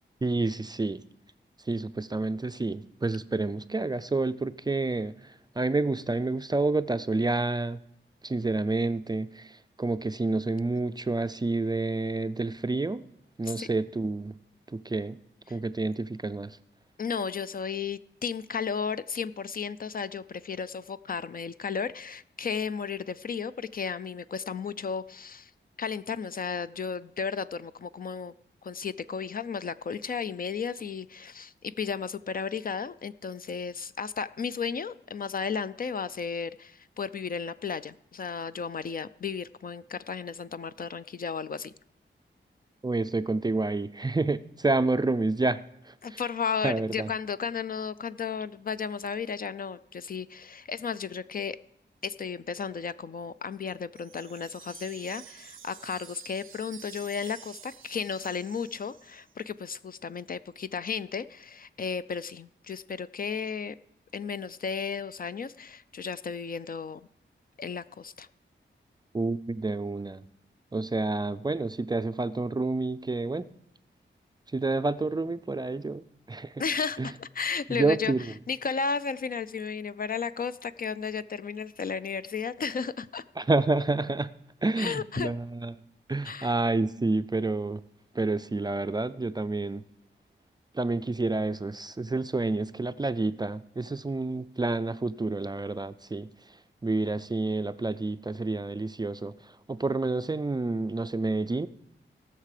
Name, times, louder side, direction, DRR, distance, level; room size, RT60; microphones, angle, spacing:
voice 1, 0.2-1.0 1.7-7.8 8.2-13.0 13.4-14.4 14.7-15.2 15.5-16.6 42.8-46.2 46.6-47.1 69.1-70.2 70.7-73.5 74.5-76.6 77.0-77.1 77.7-78.2 83.4-84.3 84.6-85.7 86.1-87.8 88.1-89.8 90.7-96.3 96.8-101.7, right 3 dB, 20° right, 12 dB, 0.4 m, -29 dB
voice 2, 17.0-25.5 25.8-28.3 28.6-41.7 46.0-51.6 52.0-63.8 64.1-67.0 67.6-68.3 76.6-78.1 78.5-83.2 84.8-85.3 86.2-86.5, left 6 dB, 45° left, 14 dB, 0.4 m, -34 dB
Wind chime, 53.9-59.3, right 9 dB, 85° right, 0.5 m, -49 dB
17.5 x 6.6 x 4.9 m, 0.78 s
wide cardioid pair, 100°, 20 cm